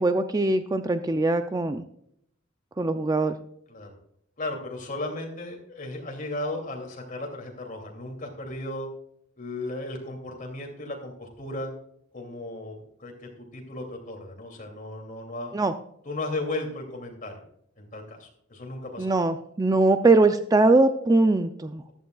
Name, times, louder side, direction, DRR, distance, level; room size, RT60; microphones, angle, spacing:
voice 1, 0.0-1.8 2.8-3.4 15.5-15.7 19.0-21.8, right 2 dB, 20° right, 9 dB, 0.4 m, -21 dB
voice 2, 4.4-8.9 9.4-11.7 12.1-15.6 16.0-17.3 17.8-19.1, left 2 dB, 40° left, 2 dB, 2.7 m, -35 dB
14.0 x 12.0 x 2.3 m, 0.71 s
head